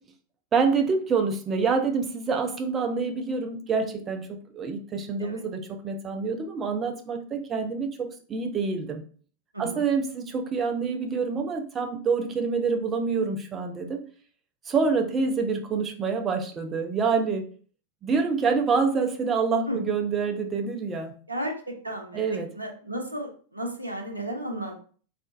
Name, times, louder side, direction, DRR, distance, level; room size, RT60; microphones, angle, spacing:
voice 1, 0.5-9.0 9.6-14.0 14.7-17.5 18.0-21.1 22.1-22.5, right 5 dB, 25° right, 5 dB, 0.5 m, -27 dB
voice 2, 9.5-9.9 19.7-19.8 21.3-24.8, right 1 dB, 85° right, 2 dB, 0.7 m, -34 dB
3.6 x 2.5 x 2.5 m, 0.42 s
figure-of-eight pair, 90°, 0 cm